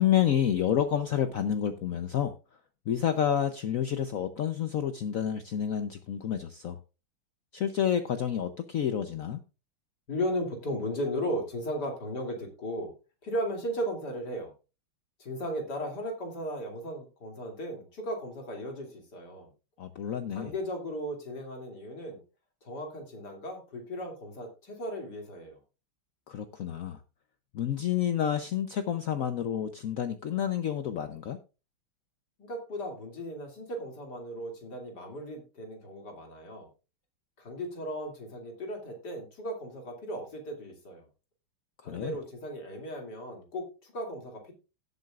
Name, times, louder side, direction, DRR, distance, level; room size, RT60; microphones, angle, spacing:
voice 1, 0.0-2.3 2.9-6.8 7.5-9.4 19.8-20.5 26.3-27.0 27.5-31.4 41.8-42.2, left 9 dB, 75° left, 9 dB, 0.7 m, -29 dB
voice 2, 10.1-12.9 13.2-14.5 15.2-19.5 20.3-22.2 22.6-25.6 32.4-36.7 37.4-41.0 41.8-44.5, equal, 50° left, 2 dB, 3.2 m, -36 dB
17.5 x 8.0 x 2.4 m, 0.30 s
omnidirectional pair, 2.4 m